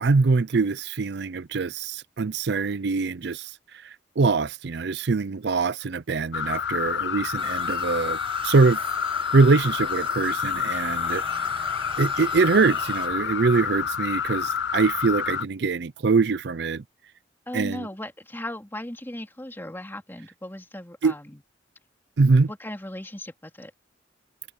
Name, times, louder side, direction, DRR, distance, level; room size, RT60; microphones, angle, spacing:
voice 1, 0.0-3.5 3.8-8.2 8.4-8.9 9.3-11.2 12.0-16.8 17.5-17.9 21.0-21.1 22.2-22.5, right 4 dB, 65° right, 0.5 m, -23 dB
sound 1, 6.3-15.4, left 7 dB, 70° left, 0.5 m, -28 dB
sound 2, 7.4-13.1, right 5 dB, 30° right, 6.4 m, -43 dB
sound 3, 10.7-15.1, right 1 dB, 10° right, 6.8 m, -50 dB
voice 2, 17.5-21.4 22.5-23.7, left 1 dB, 10° left, 2.7 m, -37 dB
head